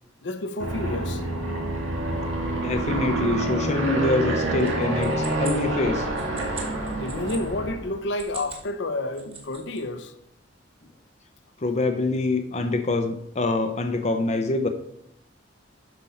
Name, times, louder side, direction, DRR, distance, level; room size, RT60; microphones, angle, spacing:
voice 1, 0.2-1.2 7.0-10.1, left 2 dB, 70° left, 0.8 m, -30 dB
Aircraft, 0.6-7.9, right 2 dB, 90° right, 1.9 m, -27 dB
voice 2, 2.6-6.1 11.6-14.7, left 3 dB, 40° left, 0.6 m, -25 dB
sound 1, 4.6-7.4 8.0-8.7 9.0-9.8, right 5 dB, 30° right, 2.0 m, -41 dB
11.0 x 4.4 x 5.5 m
head